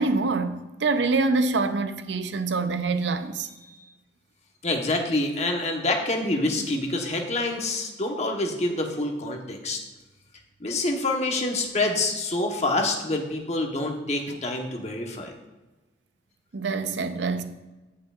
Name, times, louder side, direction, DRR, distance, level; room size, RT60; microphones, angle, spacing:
voice 1, 0.0-3.5 14.3-14.4 16.5-17.4, right 3 dB, 80° right, 0.6 m, -25 dB
voice 2, 4.6-9.8 10.6-15.3, left 2 dB, 40° left, 1.1 m, -27 dB
17.0 x 5.7 x 2.5 m
head